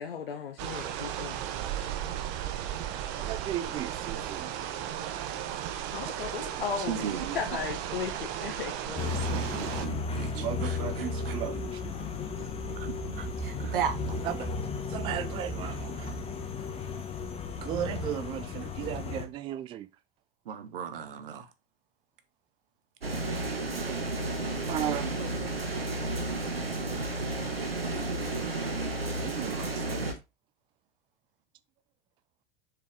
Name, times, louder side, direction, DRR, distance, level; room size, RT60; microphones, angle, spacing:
voice 1, 0.0-1.4 5.9-7.1 7.3-9.2, left 7 dB, 70° left, 0.9 m, -36 dB
sound 1, 0.6-9.9, right 10 dB, 45° right, 0.9 m, -35 dB
voice 2, 3.2-4.5 10.2-11.8 14.2-14.5 14.9-16.1 17.6-19.9 24.7-25.1 29.2-30.1, right 11 dB, 20° right, 0.3 m, -36 dB
voice 3, 6.6-7.6 7.9-8.2 9.3-11.4 12.4-12.5 12.8-14.3 20.4-21.5 23.7-24.2 24.9-25.3 27.9-29.0, right 8 dB, 65° right, 1.2 m, -38 dB
sound 2, 9.0-19.3, left 3 dB, 20° left, 1.3 m, -34 dB
sound 3, 23.0-30.1, right 2 dB, 85° right, 1.4 m, -32 dB
6.6 x 5.0 x 3.3 m
figure-of-eight pair, 85°, 29 cm